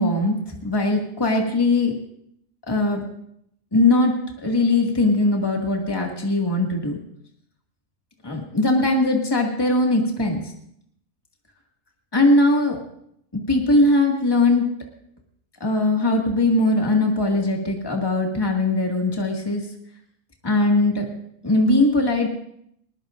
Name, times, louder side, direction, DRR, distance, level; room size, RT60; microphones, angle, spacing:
voice 1, 0.0-1.9 2.7-3.0 3.7-7.0 8.2-10.5 12.1-12.8 13.3-14.6 15.6-19.6 20.4-21.1 21.4-22.3, left 2 dB, 20° left, 0 dB, 2.1 m, -20 dB
20.5 x 20.0 x 2.6 m, 0.73 s
omnidirectional pair, 1.4 m